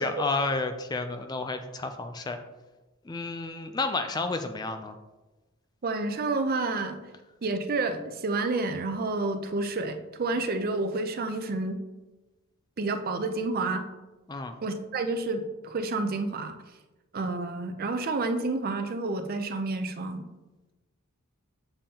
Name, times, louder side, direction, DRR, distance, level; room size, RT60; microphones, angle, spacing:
voice 1, 0.0-2.4 3.1-5.0 14.3-14.5, left 3 dB, 20° left, 7 dB, 0.3 m, -31 dB
voice 2, 5.8-7.0 7.4-11.8 12.8-13.9 14.6-16.6 17.1-20.2, right 3 dB, 45° right, 7 dB, 0.5 m, -29 dB
6.9 x 5.4 x 2.8 m, 1.1 s
head